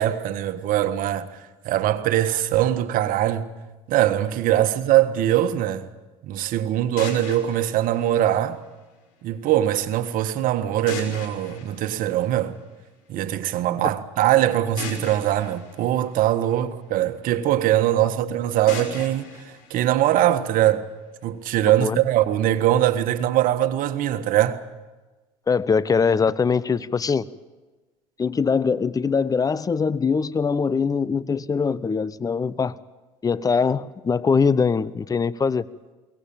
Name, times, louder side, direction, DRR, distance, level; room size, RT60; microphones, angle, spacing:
voice 1, 0.0-3.5 3.9-5.9 6.2-8.6 9.2-12.6 13.1-20.9 21.2-24.6, right 12 dB, 60° right, 1.5 m, -22 dB
sound 1, 7.0-9.0 10.9-12.8 14.8-17.0 18.7-20.7, left 5 dB, 70° left, 5.2 m, -39 dB
voice 2, 25.5-27.3 28.2-32.8 33.2-35.7, left 5 dB, 20° left, 0.8 m, -22 dB
22.5 x 18.5 x 8.8 m
hypercardioid pair, 75°, 16 cm